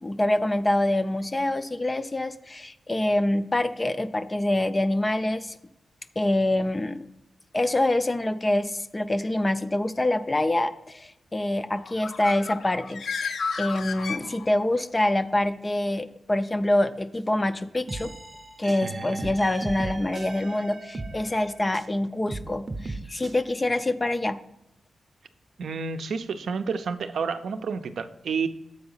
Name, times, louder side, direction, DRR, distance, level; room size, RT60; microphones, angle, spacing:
voice 1, 0.0-5.6 6.2-7.0 7.5-18.1 18.6-24.4, left 1 dB, 20° left, 12 dB, 0.3 m, -26 dB
Bird, 11.8-14.8, left 5 dB, 70° left, 0.5 m, -33 dB
sound 1, 17.9-22.0 22.3-23.3, right 2 dB, 25° right, 0.7 m, -37 dB
voice 2, 18.8-19.3 25.6-28.5, right 5 dB, 80° right, 9 dB, 0.5 m, -30 dB
7.8 x 4.8 x 5.5 m, 0.88 s
wide cardioid pair, 170°, 0 cm